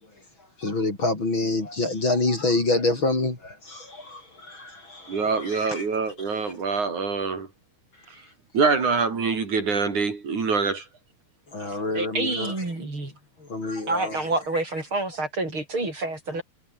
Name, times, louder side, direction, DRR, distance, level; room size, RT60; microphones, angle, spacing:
voice 1, 0.6-5.9 11.5-12.5 13.5-14.2 14.5-14.6, left 2 dB, 35° left, 5.6 m, -27 dB
voice 2, 5.1-7.5 8.5-10.9, right 4 dB, 65° right, 5.6 m, -25 dB
voice 3, 11.9-13.1 13.9-16.4, right 2 dB, 35° right, 8.0 m, -28 dB
omnidirectional pair, 3.8 m